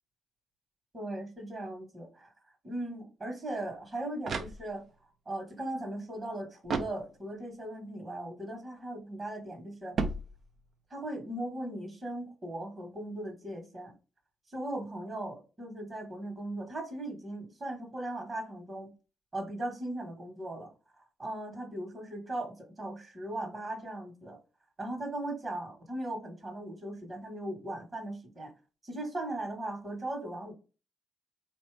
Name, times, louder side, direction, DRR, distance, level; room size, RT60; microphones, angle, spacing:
voice 1, 0.9-2.3 2.6-4.8 5.2-10.0 10.9-13.9 14.5-18.9 19.3-20.7 21.0-24.4 24.8-28.5 28.8-30.5, right 1 dB, 35° right, 1.6 m, -38 dB
sound 1, 3.8-5.1 6.6-7.5 9.9-10.9, right 4 dB, 50° right, 0.6 m, -36 dB
4.2 x 2.9 x 3.4 m
cardioid pair, 90°, 0 cm